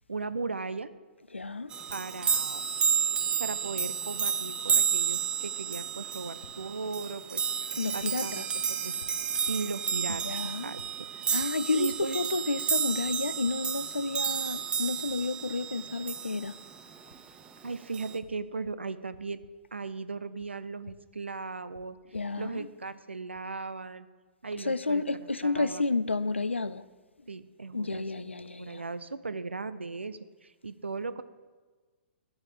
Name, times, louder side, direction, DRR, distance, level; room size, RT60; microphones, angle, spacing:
voice 1, 0.1-0.9 1.9-2.6 3.4-8.4 8.7-9.0 9.5-10.8 11.3-12.2 17.6-19.4 19.7-22.0 22.4-24.1 24.4-25.0 25.4-25.8 27.3-28.3 28.6-31.2, right 4 dB, 80° right, 0.6 m, -37 dB
voice 2, 1.3-1.7 7.8-8.5 10.1-10.7 11.3-16.6 22.1-22.7 24.6-26.8 27.7-28.8, left 3 dB, 85° left, 0.5 m, -31 dB
sound 1, 1.7-16.7 17.9-18.2, right 7 dB, 15° right, 0.6 m, -31 dB
14.0 x 7.2 x 4.9 m
figure-of-eight pair, 115°, 6 cm